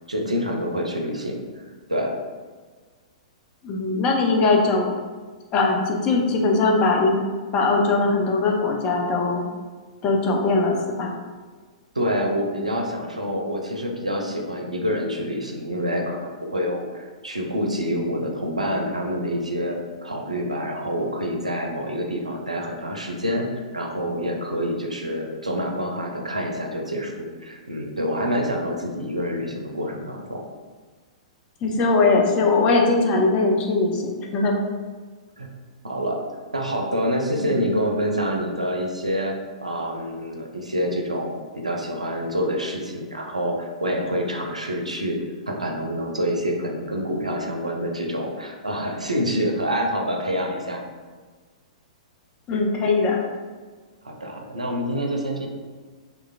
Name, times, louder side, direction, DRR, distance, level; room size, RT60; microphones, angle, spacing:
voice 1, 0.1-2.1 11.9-30.4 35.4-35.5 35.8-36.2 36.5-39.3 39.6-45.2 45.5-50.8 54.0-55.5, equal, 90° right, 1 dB, 0.4 m, -27 dB
voice 2, 3.6-4.9 5.5-7.2 7.5-9.4 10.0-11.1 31.6-34.5 37.4-37.6 52.5-53.2, left 3 dB, 30° left, 0 dB, 0.4 m, -20 dB
2.9 x 2.2 x 2.3 m, 1.5 s
figure-of-eight pair, 110°, 4 cm